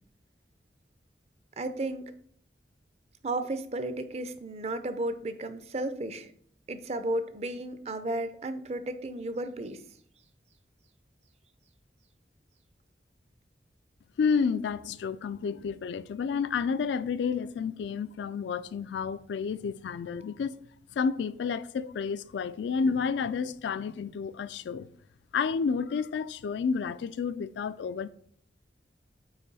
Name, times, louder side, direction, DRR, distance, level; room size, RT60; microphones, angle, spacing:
voice 1, 1.6-2.1 3.2-6.3 6.7-9.8, right 2 dB, 35° right, 0.5 m, -33 dB
voice 2, 14.2-20.6 21.0-24.9 25.3-28.1, left 5 dB, 80° left, 0.3 m, -30 dB
8.9 x 3.0 x 4.0 m
head